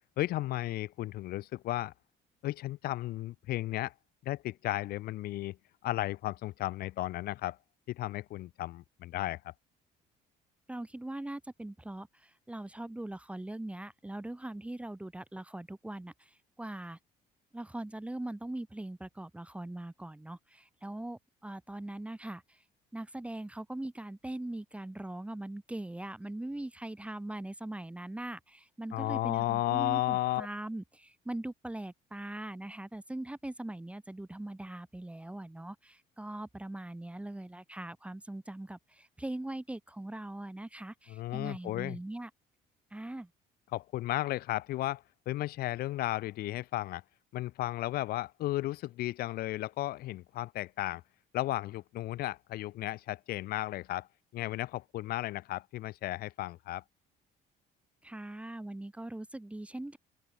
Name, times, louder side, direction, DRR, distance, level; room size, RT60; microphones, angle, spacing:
voice 1, 0.2-1.9 2.4-3.9 4.2-5.6 5.8-7.6 7.9-9.5 28.9-30.5 41.1-42.0 43.7-47.0 47.3-51.0 51.3-54.1 54.3-56.8, left 16 dB, 65° left, 0.4 m, -34 dB
voice 2, 10.7-17.0 17.5-22.6 22.9-42.3 42.9-43.3 58.0-60.0, right 1 dB, 5° right, 0.8 m, -41 dB
open air
cardioid pair, 110°, 17 cm